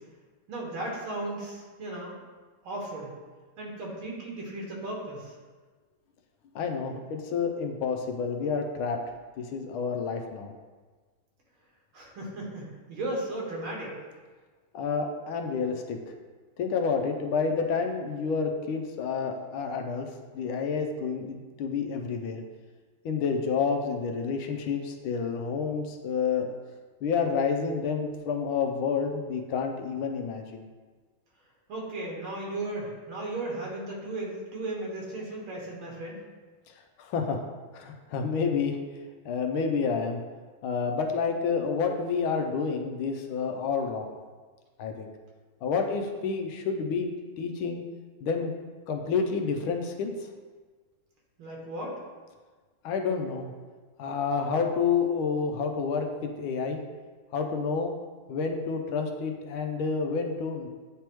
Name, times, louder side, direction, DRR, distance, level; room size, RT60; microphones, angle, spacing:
voice 1, 0.5-2.2 2.6-3.1 3.6-5.3 11.9-14.0 31.7-36.2 51.4-52.0, right 2 dB, 90° right, -2 dB, 2.1 m, -35 dB
voice 2, 6.5-9.0 9.4-10.5 14.7-16.0 16.6-20.1 20.3-22.4 23.0-26.5 27.0-30.6 37.0-37.5 37.7-38.8 39.2-40.2 40.6-44.2 44.8-45.1 45.6-47.1 47.4-47.8 48.2-48.5 48.9-50.1 52.8-53.5 54.0-56.8 57.3-57.9 58.3-60.7, left 5 dB, 85° left, 4 dB, 1.5 m, -29 dB
9.2 x 3.5 x 3.0 m, 1.4 s
omnidirectional pair, 2.2 m